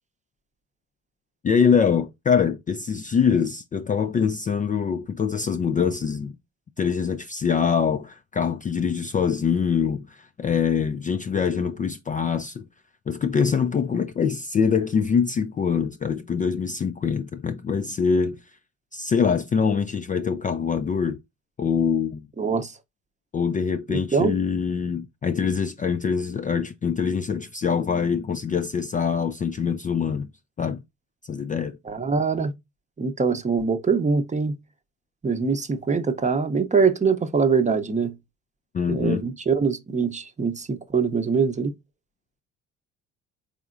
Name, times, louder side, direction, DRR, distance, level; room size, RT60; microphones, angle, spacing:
voice 1, 1.4-6.4 6.8-12.6 13.1-18.4 18.9-21.2 21.6-22.3 23.3-30.3 30.6-30.8 31.2-31.8 38.7-39.2, left 6 dB, 25° left, 0.4 m, -24 dB
voice 2, 22.4-22.7 23.9-24.4 31.9-32.5 33.0-34.6 35.2-38.1 38.9-41.7, right 5 dB, 20° right, 0.7 m, -23 dB
4.1 x 3.6 x 2.4 m
hypercardioid pair, 65°, 35 cm